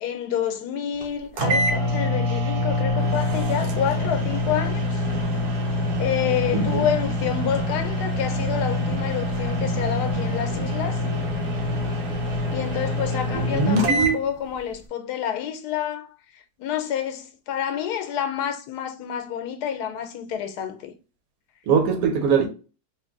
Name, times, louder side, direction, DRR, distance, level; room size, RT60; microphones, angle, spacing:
voice 1, 0.0-5.0 6.0-11.0 12.5-20.9, left 9 dB, 80° left, 1.1 m, -28 dB
sound 1, 1.0-1.1 1.4-14.2, left 1 dB, 90° right, 1.3 m, -25 dB
sound 2, 3.0-14.0, equal, 20° left, 0.3 m, -35 dB
voice 2, 6.5-6.8 13.5-14.2 21.7-22.5, right 5 dB, 70° right, 1.2 m, -21 dB
3.2 x 2.6 x 3.5 m
omnidirectional pair, 1.7 m